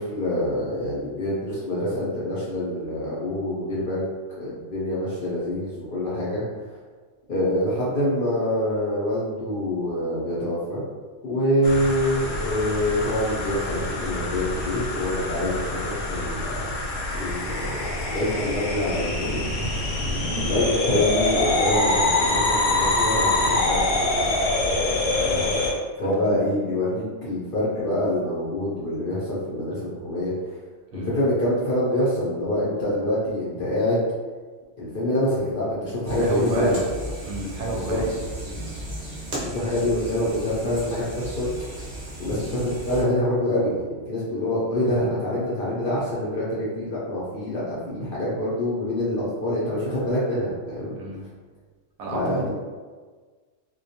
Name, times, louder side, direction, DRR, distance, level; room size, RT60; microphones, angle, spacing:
voice 1, 0.0-4.1 4.4-6.4 7.3-10.8 11.2-16.6 17.1-19.4 20.5-23.8 24.1-24.3 26.0-30.5 30.9-34.1 34.8-36.8 37.7-38.0 39.4-41.9 42.2-51.0 52.1-52.5, left 1 dB, 60° left, -8 dB, 0.6 m, -26 dB
sound 1, 11.6-25.7, left 2 dB, 90° left, 1.0 m, -25 dB
voice 2, 25.2-25.7 26.0-26.1 30.9-31.1 36.2-36.8 37.2-38.1 38.5-38.6 39.6-39.8 51.0-51.2 52.0-52.5, right 2 dB, 70° right, -3 dB, 0.8 m, -31 dB
sound 2, 36.0-43.0, right 1 dB, 45° right, 0.6 m, -35 dB
2.2 x 2.2 x 2.7 m, 1.4 s
omnidirectional pair, 1.3 m